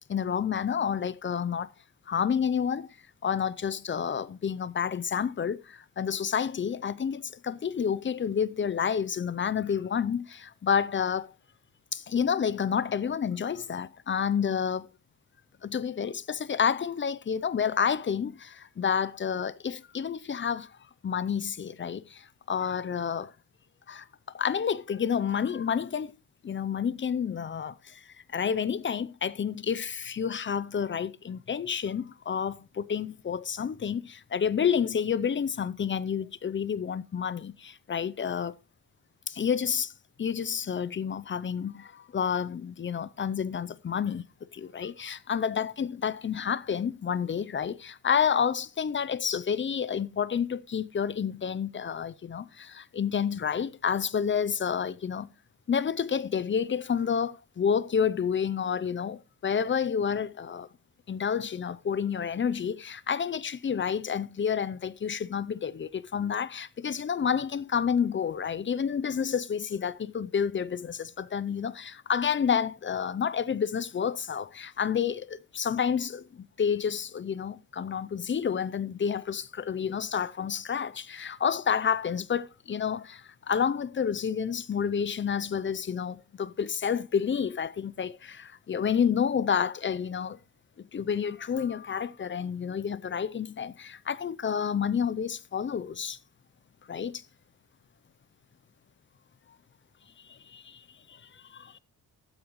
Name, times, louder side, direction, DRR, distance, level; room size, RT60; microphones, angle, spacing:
voice 1, 0.1-1.7 2.1-2.9 3.2-11.3 11.9-14.9 15.6-20.8 21.0-23.3 23.9-24.1 24.3-26.1 26.4-38.5 39.3-39.9 40.2-44.2 44.5-55.3 55.7-60.7 61.1-90.4 90.9-96.2 96.9-97.2 100.3-101.8, left 7 dB, 30° left, 0.5 m, -29 dB
15.0 x 9.1 x 3.0 m
wide cardioid pair, 165°, 39 cm